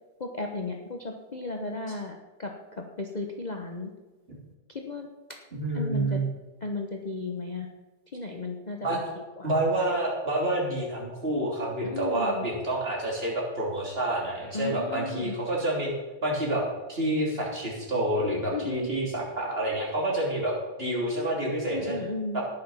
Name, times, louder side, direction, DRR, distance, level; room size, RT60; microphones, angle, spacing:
voice 1, 0.2-3.9 4.9-5.1 5.7-6.2 6.6-7.7 8.1-9.5 11.8-12.5 14.5-15.4 18.5-18.9 21.7-22.4, left 3 dB, 30° left, 2 dB, 1.0 m, -35 dB
voice 2, 5.5-6.3 8.8-9.0 9.4-15.9 16.2-16.6 16.9-22.0 22.3-22.4, right 1 dB, 35° right, -3 dB, 3.5 m, -28 dB
18.5 x 6.8 x 5.7 m, 1.2 s
omnidirectional pair, 1.7 m